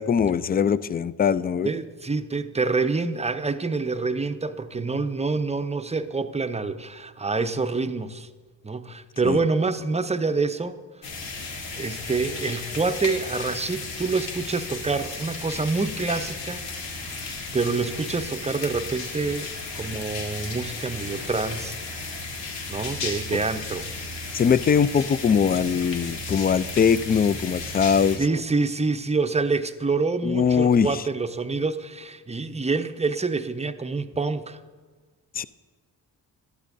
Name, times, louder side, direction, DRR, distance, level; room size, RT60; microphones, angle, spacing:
voice 1, 0.0-1.7 9.2-9.4 24.3-28.4 30.2-31.0 35.4-35.5, left 7 dB, 25° left, 18 dB, 0.3 m, -21 dB
voice 2, 1.6-8.3 8.6-10.8 11.8-16.7 17.1-21.8 22.7-23.9 28.2-34.6, right 4 dB, 15° right, 11 dB, 0.6 m, -27 dB
sound 1, 11.0-28.2, left 3 dB, 85° left, 1.7 m, -34 dB
12.5 x 12.0 x 2.6 m, 1.4 s
supercardioid pair, 50°, 42 cm